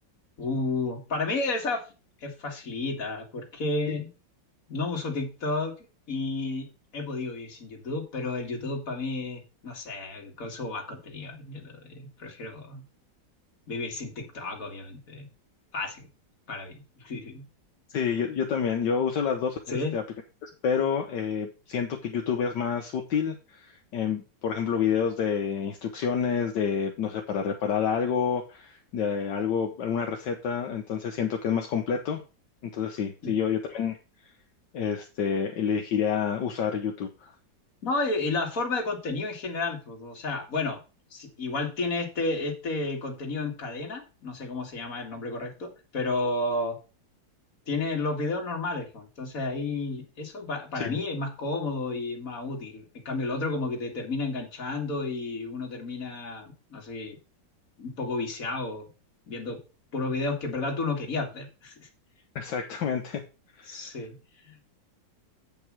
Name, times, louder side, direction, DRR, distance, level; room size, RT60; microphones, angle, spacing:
voice 1, 0.4-1.8 2.2-4.1 4.7-5.7 6.1-6.7 6.9-12.8 13.7-15.3 15.7-16.1 16.5-17.4 19.7-19.9 33.2-33.3 37.8-40.8 41.1-46.8 47.7-57.2 57.8-58.9 59.3-59.6 59.9-61.9 63.7-64.2 64.4-64.6, left 3 dB, 50° left, 2 dB, 2.4 m, -32 dB
voice 2, 17.9-20.0 20.4-32.2 32.7-34.0 34.7-37.3 50.7-51.0 62.3-63.2 63.6-63.9, left 7 dB, 70° left, 3 dB, 1.6 m, -28 dB
8.4 x 5.3 x 6.0 m, 0.31 s
omnidirectional pair, 2.0 m